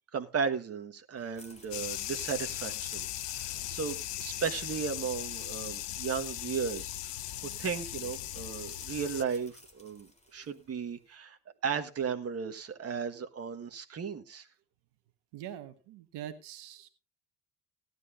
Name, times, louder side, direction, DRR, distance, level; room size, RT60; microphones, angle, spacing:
voice 1, 0.1-7.1 7.6-14.5, right 6 dB, 30° right, 6 dB, 1.6 m, -35 dB
sound 1, 1.2-10.7, left 1 dB, 15° left, 3.7 m, -55 dB
sound 2, 1.7-9.2, left 13 dB, 80° left, 0.7 m, -38 dB
voice 2, 15.3-16.9, right 11 dB, 55° right, 9 dB, 1.5 m, -44 dB
17.5 x 11.5 x 2.6 m, 0.29 s
hypercardioid pair, 60°, 47 cm